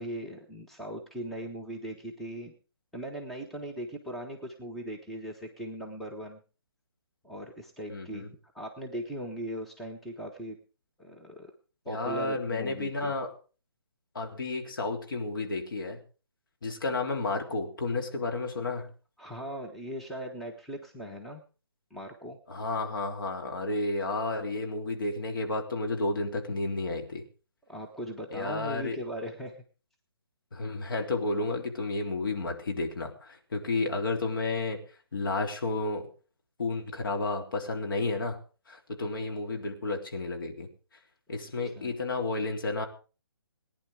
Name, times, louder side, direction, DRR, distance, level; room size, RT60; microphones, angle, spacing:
voice 1, 0.0-2.5 2.9-6.4 7.2-8.3 8.5-10.6 11.0-11.5 11.8-13.1 19.2-21.4 21.9-22.4 27.7-29.6 41.6-41.9, right 1 dB, ahead, -1 dB, 1.3 m, -39 dB
voice 2, 7.9-8.3 11.9-13.3 14.2-16.0 16.6-18.9 22.5-27.2 28.3-29.0 30.5-34.8 35.1-36.1 36.6-38.4 38.7-40.7 41.3-42.9, left 2 dB, 55° left, 2 dB, 3.6 m, -31 dB
19.5 x 10.5 x 4.9 m, 0.37 s
figure-of-eight pair, 140°, 13 cm